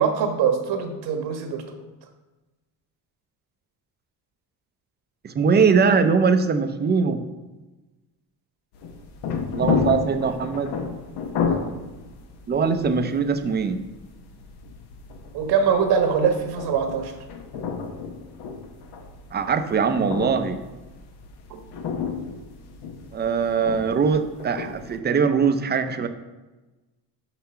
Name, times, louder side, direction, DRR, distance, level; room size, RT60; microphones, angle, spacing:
voice 1, 0.0-1.6 15.3-17.1 21.5-21.6, right 6 dB, 70° right, 4 dB, 1.3 m, -22 dB
voice 2, 5.2-7.2 9.3-10.7 12.5-13.8 19.3-20.6 23.1-26.1, right 5 dB, 25° right, 9 dB, 0.5 m, -21 dB
sound 1, 8.7-25.0, left 5 dB, 75° left, 1.0 m, -32 dB
5.8 x 5.7 x 5.6 m, 1.1 s
cardioid pair, 135°, 39 cm